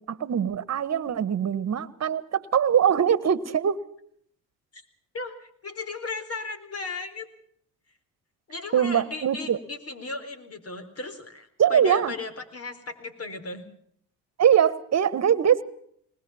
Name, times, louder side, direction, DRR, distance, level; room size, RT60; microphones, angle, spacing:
voice 1, 0.1-3.8 8.7-9.6 11.6-12.1 14.4-15.6, right 8 dB, 45° right, 17 dB, 1.6 m, -22 dB
voice 2, 5.1-7.3 8.5-13.7, left 3 dB, 40° left, 9 dB, 4.2 m, -36 dB
20.5 x 20.0 x 7.3 m, 0.65 s
supercardioid pair, 75°, 36 cm